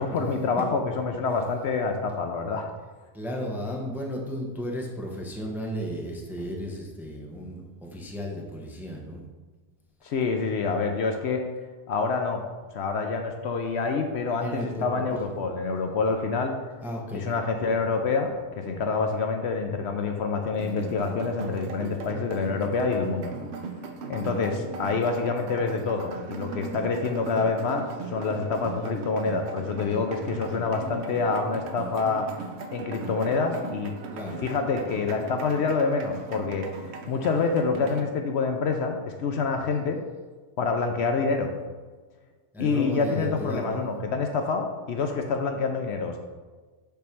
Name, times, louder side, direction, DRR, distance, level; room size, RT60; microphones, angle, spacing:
voice 1, 0.0-2.6 10.0-11.5 11.9-12.4 12.7-16.5 17.1-23.3 24.1-27.9 28.1-32.3 32.7-33.9 34.4-36.7 37.1-40.0 40.6-41.5 42.6-46.2, left 4 dB, 65° left, 4 dB, 0.8 m, -27 dB
voice 2, 3.1-9.2 14.4-15.0 16.8-17.3 34.1-34.4 42.5-43.8, equal, ahead, -1 dB, 0.7 m, -34 dB
sound 1, 20.6-38.0, right 4 dB, 65° right, 0.9 m, -38 dB
6.9 x 3.2 x 5.8 m, 1.3 s
omnidirectional pair, 1.3 m